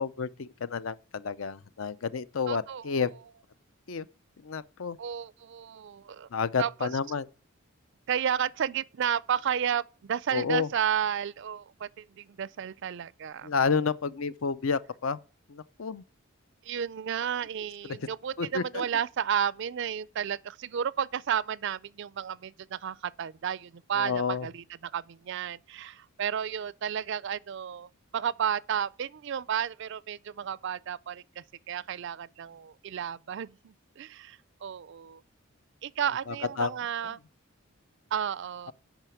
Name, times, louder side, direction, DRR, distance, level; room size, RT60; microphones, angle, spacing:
voice 1, 0.0-3.1 3.9-4.0 4.4-5.0 6.3-7.3 10.3-10.7 13.4-15.2 15.5-16.0 17.9-18.0 18.4-18.8 24.0-24.5 36.3-36.7, left 5 dB, 70° left, 0.6 m, -30 dB
voice 2, 2.5-3.0 5.0-6.3 6.6-7.0 8.1-13.5 16.6-35.2 35.8-37.2 38.1-38.7, right 8 dB, 55° right, 0.4 m, -32 dB
9.1 x 5.8 x 7.0 m
head